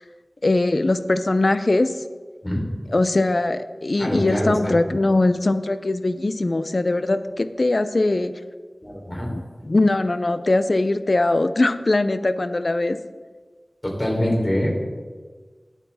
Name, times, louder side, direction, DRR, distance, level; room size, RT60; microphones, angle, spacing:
voice 1, 0.4-2.0 2.9-8.4 9.3-13.0, left 2 dB, 60° left, 12 dB, 0.6 m, -21 dB
voice 2, 4.0-4.9 8.8-9.3 13.8-14.7, equal, 25° left, -2 dB, 3.9 m, -24 dB
18.5 x 8.3 x 3.7 m, 1.4 s
wide cardioid pair, 50°, 0 cm